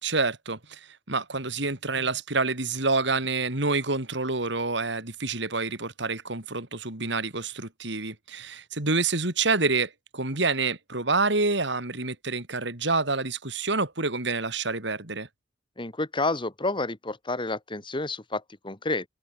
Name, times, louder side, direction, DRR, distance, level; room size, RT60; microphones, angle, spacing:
voice 1, 0.0-15.3, right 3 dB, 70° right, 4.2 m, -27 dB
voice 2, 15.8-19.0, left 2 dB, 25° left, 2.7 m, -30 dB
head